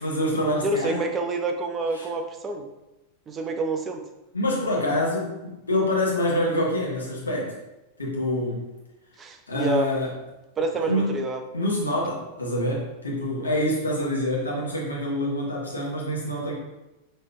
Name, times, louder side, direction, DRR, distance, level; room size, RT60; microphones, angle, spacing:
voice 1, 0.0-1.1 1.9-2.1 4.3-7.6 8.0-8.7 9.5-10.2 10.7-11.2 11.5-16.5, left 1 dB, 75° left, -3 dB, 1.0 m, -26 dB
voice 2, 0.6-2.7 3.3-4.0 9.2-9.9 10.6-11.4 13.4-13.5, right 3 dB, 25° right, 5 dB, 0.5 m, -28 dB
5.3 x 3.2 x 2.2 m, 0.99 s
figure-of-eight pair, 90°, 0 cm